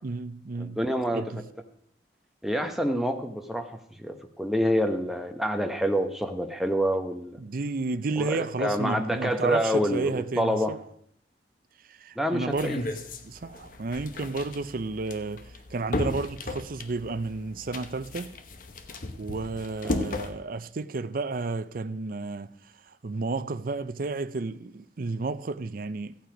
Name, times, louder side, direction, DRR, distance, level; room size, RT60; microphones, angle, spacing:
voice 1, 0.0-0.8 1.1-1.4 7.4-10.8 11.9-12.9 13.2-18.3 19.2-22.5 23.0-26.2, right 3 dB, 55° right, 0.5 m, -32 dB
voice 2, 0.6-1.2 2.4-7.4 8.2-10.7 12.2-12.8 19.8-20.1, equal, ahead, 0.9 m, -27 dB
sound 1, 12.5-20.3, left 2 dB, 50° left, 0.9 m, -35 dB
14.5 x 8.7 x 5.1 m
head